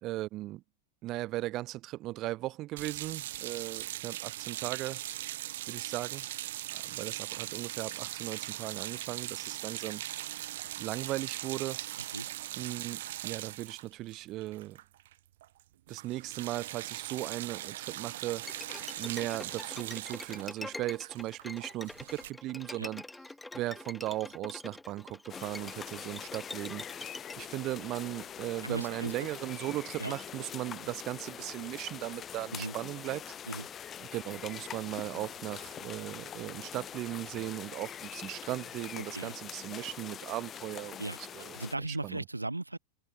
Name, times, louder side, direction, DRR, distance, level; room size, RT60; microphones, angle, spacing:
voice 1, 0.0-0.6 1.0-5.0 5.7-6.2 6.7-10.0 10.8-11.8 12.6-14.8 15.9-23.0 23.5-33.3 34.0-41.6 41.9-42.2, right 16 dB, 35° right, 2.6 m, -37 dB
sound 1, 2.8-15.1 15.4-15.6 15.9-22.3, right 14 dB, 55° right, 5.1 m, -40 dB
Bowed string instrument, 18.4-27.4, left 2 dB, 5° left, 5.1 m, -45 dB
sound 2, 25.3-41.8, left 9 dB, 25° left, 6.0 m, -44 dB
voice 2, 28.6-29.1 30.0-30.1 32.5-32.7 33.5-33.7 39.0-39.3 41.0-41.2 41.5-42.8, right 2 dB, 85° right, 2.9 m, -37 dB
figure-of-eight pair, 90°, 0 cm